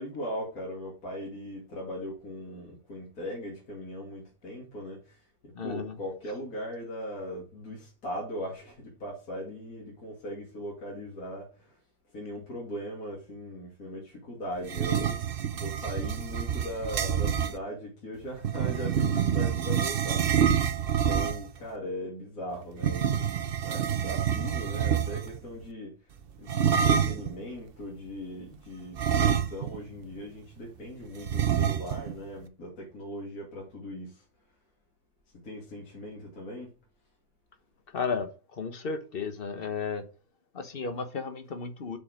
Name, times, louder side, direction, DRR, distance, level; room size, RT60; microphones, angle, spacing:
voice 1, 0.0-5.2 5.4-11.7 12.1-15.2 15.6-20.6 21.0-23.3 23.6-25.9 26.4-34.2 35.4-36.7, equal, 60° left, 3.0 m, -39 dB
voice 2, 5.5-6.0 37.9-40.0 40.5-42.0, left 5 dB, 40° left, 1.1 m, -34 dB
sound 1, 14.6-17.6 18.4-21.6 22.8-25.4 26.5-27.3 29.0-29.9 30.2-30.3 31.3-32.1, right 8 dB, 55° right, 0.6 m, -27 dB
7.0 x 4.9 x 4.9 m
omnidirectional pair, 1.8 m